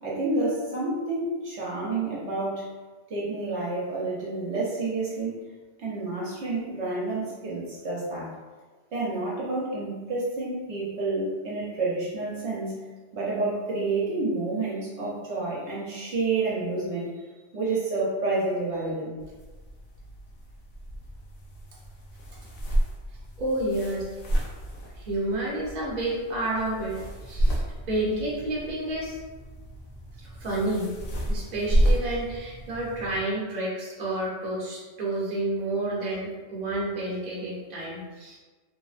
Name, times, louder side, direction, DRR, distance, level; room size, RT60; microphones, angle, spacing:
voice 1, 0.0-2.7 3.1-5.3 5.8-8.3 8.9-12.8 13.1-17.2 17.5-19.1, right 3 dB, 70° right, -6 dB, 0.9 m, -29 dB
sound 1, 19.2-33.2, right 1 dB, 90° left, 0.9 m, -31 dB
voice 2, 23.4-24.1 24.9-29.2 30.4-30.9 31.3-38.4, right 1 dB, 40° right, -6 dB, 0.8 m, -30 dB
2.6 x 2.1 x 2.4 m, 1.3 s
omnidirectional pair, 1.2 m